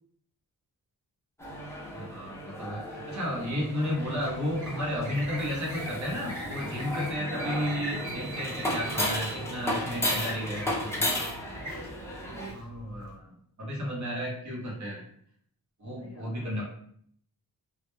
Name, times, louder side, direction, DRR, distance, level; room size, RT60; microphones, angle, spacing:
sound 1, 1.4-12.5, left 1 dB, 5° left, 0.4 m, -34 dB
voice 1, 1.9-11.1 12.5-13.3 13.6-15.0 15.8-16.6, equal, 50° right, -3 dB, 0.8 m, -33 dB
sound 2, 3.8-13.1, equal, 10° right, 1.0 m, -42 dB
voice 2, 11.0-11.4 15.9-16.5, equal, 40° left, -3 dB, 0.8 m, -49 dB
2.1 x 2.1 x 3.0 m, 0.65 s
wide cardioid pair, 165°, 38 cm